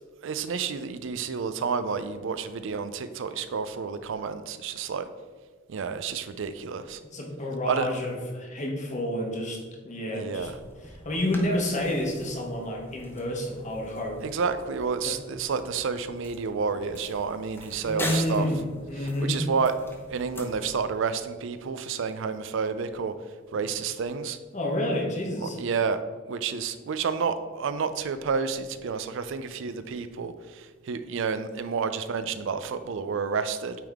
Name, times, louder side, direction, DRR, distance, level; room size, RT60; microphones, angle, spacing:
voice 1, 0.2-5.1 5.7-7.0 7.7-7.9 10.1-10.5 14.2-18.5 19.0-19.7 20.1-23.1 23.5-24.4 25.4-26.0 26.3-33.8, right 5 dB, 65° right, 11 dB, 0.4 m, -30 dB
voice 2, 7.1-10.5 10.8-14.2 15.1-15.2 17.8-19.4 24.5-25.6, left 1 dB, 40° left, 0 dB, 1.1 m, -29 dB
sound 1, 10.3-20.8, left 1 dB, 10° left, 0.8 m, -42 dB
8.8 x 3.5 x 3.5 m, 1.4 s
head